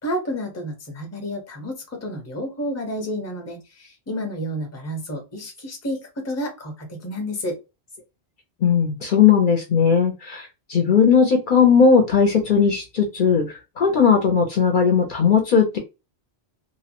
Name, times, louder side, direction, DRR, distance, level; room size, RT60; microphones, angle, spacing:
voice 1, 0.0-7.6, equal, 20° left, 3 dB, 0.6 m, -30 dB
voice 2, 8.6-15.8, left 6 dB, 55° left, 1 dB, 0.7 m, -18 dB
2.7 x 2.1 x 2.8 m, 0.27 s
omnidirectional pair, 1.1 m